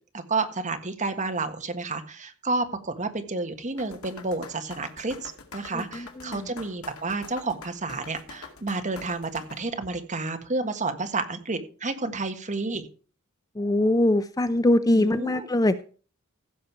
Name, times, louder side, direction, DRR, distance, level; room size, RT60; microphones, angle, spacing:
voice 1, 0.3-12.8 14.9-15.5, right 3 dB, 35° right, 6 dB, 1.5 m, -30 dB
sound 1, 3.8-9.6, left 4 dB, 80° left, 2.2 m, -44 dB
voice 2, 5.7-6.5 13.6-15.8, left 1 dB, 15° left, 12 dB, 0.5 m, -23 dB
15.5 x 6.7 x 4.6 m, 0.38 s
head